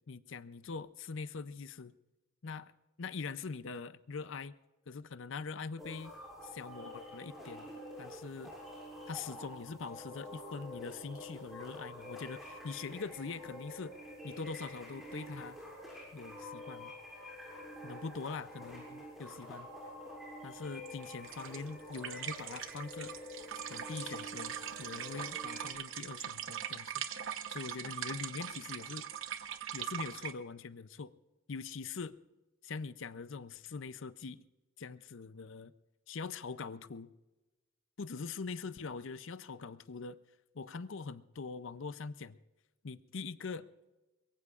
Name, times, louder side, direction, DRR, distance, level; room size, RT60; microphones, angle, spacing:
voice 1, 0.1-1.9 2.4-2.7 3.0-4.5 4.9-6.1 6.4-7.7 8.0-8.5 9.1-14.0 14.2-15.6 16.1-16.9 17.8-19.7 20.4-23.1 23.7-26.9 27.5-29.1 29.7-31.1 31.5-32.2 32.6-34.4 34.8-35.7 36.1-37.1 38.0-40.2 40.5-42.4 42.8-43.7, left 4 dB, 60° left, 14 dB, 0.5 m, -43 dB
sound 1, 5.8-25.7, left 1 dB, ahead, 6.6 m, -48 dB
sound 2, 20.8-30.3, right 9 dB, 65° right, 1.0 m, -41 dB
23.0 x 22.5 x 2.4 m, 1.1 s
head